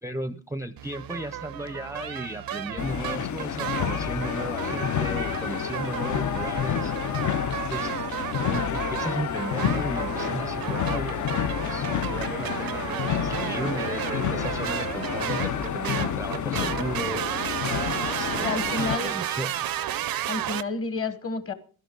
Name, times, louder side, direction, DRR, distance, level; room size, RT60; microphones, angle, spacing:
voice 1, 0.0-6.9 7.7-7.9 8.5-11.3 11.6-17.6 18.0-19.5, right 1 dB, 10° right, 10 dB, 0.5 m, -35 dB
sound 1, 0.8-20.6, right 12 dB, 80° right, 0.6 m, -33 dB
sound 2, 2.8-19.0, left 9 dB, 60° left, 0.5 m, -29 dB
voice 2, 18.4-19.1 20.3-21.5, left 3 dB, 40° left, 11 dB, 1.3 m, -30 dB
15.5 x 12.5 x 3.8 m, 0.40 s
wide cardioid pair, 165°, 35 cm